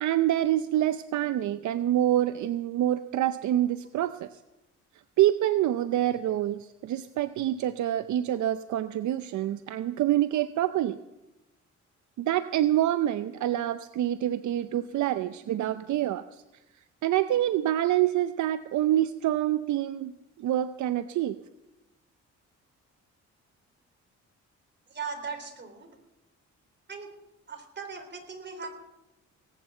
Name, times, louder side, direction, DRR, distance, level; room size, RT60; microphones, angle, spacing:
voice 1, 0.0-4.4 5.2-11.0 12.2-16.4 17.0-20.1 20.4-21.4, right 12 dB, 70° right, 12 dB, 0.6 m, -26 dB
voice 2, 24.9-25.9 26.9-27.1 27.5-28.7, right 5 dB, 35° right, 5 dB, 3.8 m, -38 dB
18.5 x 9.3 x 7.7 m, 0.97 s
cardioid pair, 90°, 30 cm